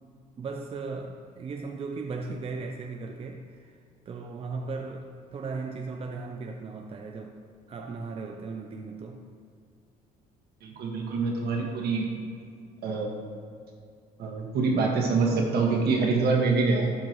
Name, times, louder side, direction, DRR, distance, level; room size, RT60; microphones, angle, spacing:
voice 1, 0.4-3.8 4.1-7.3 7.7-9.2, right 4 dB, 35° right, 3 dB, 0.6 m, -37 dB
voice 2, 10.6-12.0 12.8-13.2 14.2-16.9, right 4 dB, 70° right, -1 dB, 1.8 m, -25 dB
12.0 x 5.9 x 3.1 m, 2.3 s
cardioid pair, 110°, 17 cm